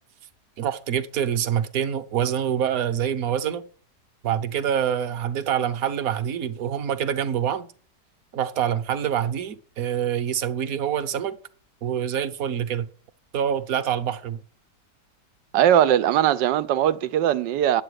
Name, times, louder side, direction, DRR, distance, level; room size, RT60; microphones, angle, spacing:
voice 1, 0.6-3.6 4.2-7.7 8.3-11.4 11.8-12.9 13.3-14.4, right 9 dB, 60° right, 1.2 m, -26 dB
voice 2, 15.5-17.8, right 11 dB, 90° right, 1.4 m, -20 dB
10.0 x 7.7 x 6.4 m
omnidirectional pair, 1.9 m